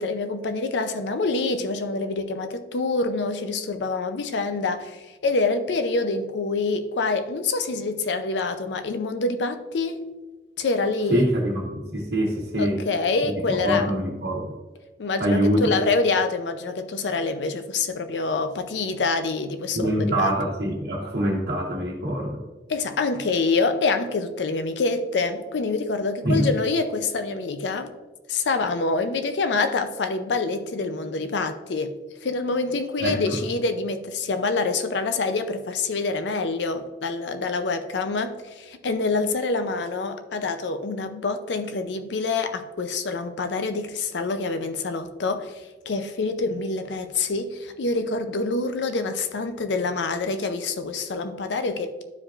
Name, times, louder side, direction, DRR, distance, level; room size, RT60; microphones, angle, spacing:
voice 1, 0.0-10.0 10.6-11.3 12.5-13.9 15.0-20.3 22.7-27.9 28.3-31.9 32.2-52.0, left 3 dB, 85° left, 9 dB, 0.5 m, -26 dB
voice 2, 11.1-12.8 13.5-14.5 15.2-15.7 19.7-22.4 26.2-26.5 33.0-33.4, equal, 60° right, -6 dB, 1.1 m, -24 dB
11.5 x 4.9 x 2.5 m, 1.2 s
head